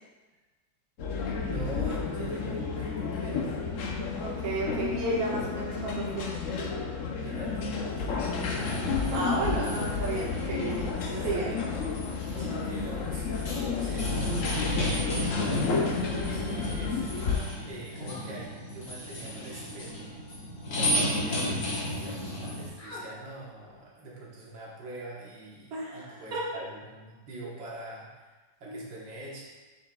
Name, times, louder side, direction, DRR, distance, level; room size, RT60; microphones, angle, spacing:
sound 1, 1.0-17.4, left 5 dB, 60° left, 0.8 m, -31 dB
voice 1, 1.4-3.6 7.2-8.4 11.0-11.7 12.4-13.3 13.6-17.0 17.6-20.1 20.7-28.3 28.6-29.4, right 2 dB, 80° right, -5 dB, 1.9 m, -43 dB
voice 2, 4.2-6.4 9.1-11.0 11.2-11.5 25.7-26.4 28.7-28.8, right 2 dB, 55° right, -6 dB, 1.8 m, -32 dB
sound 2, 8.3-22.7, equal, 85° left, 2.3 m, -34 dB
sound 3, 15.9-21.5 21.8-22.5 22.8-23.0, left 1 dB, 30° left, 1.8 m, -50 dB
7.1 x 7.0 x 2.3 m, 1.3 s
omnidirectional pair, 2.0 m